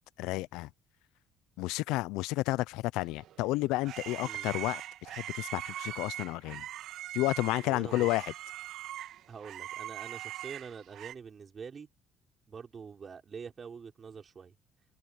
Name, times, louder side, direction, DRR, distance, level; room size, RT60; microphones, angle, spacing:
voice 1, 0.2-0.7 1.6-4.8 5.1-6.6 7.1-8.2, left 19 dB, 80° left, 0.7 m, -31 dB
sound 1, 3.2-11.1, right 13 dB, 70° right, 3.0 m, -41 dB
voice 2, 4.2-4.5 7.6-8.1 9.3-11.9 12.5-14.5, right 6 dB, 40° right, 6.0 m, -45 dB
supercardioid pair, 65°, 0 cm